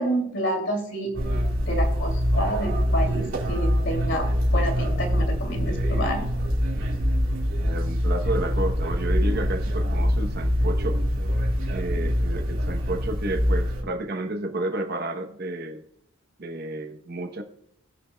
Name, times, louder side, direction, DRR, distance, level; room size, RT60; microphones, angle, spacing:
voice 1, 0.0-6.3, right 1 dB, 55° left, 4 dB, 2.5 m, -29 dB
sound 1, 1.1-13.8, equal, 65° right, 3.5 m, -24 dB
voice 2, 7.6-11.0 11.7-15.8 16.4-17.4, right 2 dB, 45° right, 6 dB, 0.9 m, -31 dB
20.0 x 6.9 x 2.2 m, 0.78 s
head